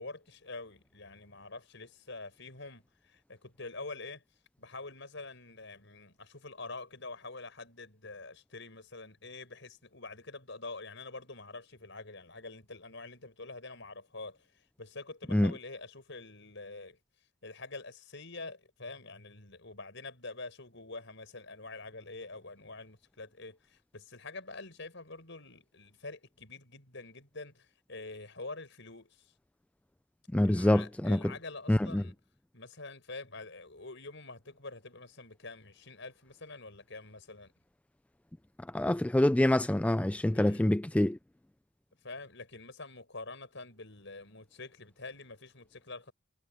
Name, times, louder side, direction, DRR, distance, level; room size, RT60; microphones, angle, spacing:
voice 1, 0.0-4.2 4.6-17.0 17.4-29.3 30.4-32.1 32.5-37.5 40.3-40.7 42.0-46.1, left 3 dB, 65° left, 7.3 m, -46 dB
voice 2, 30.3-31.3 31.7-32.0 38.7-41.2, left 1 dB, 5° left, 0.3 m, -26 dB
head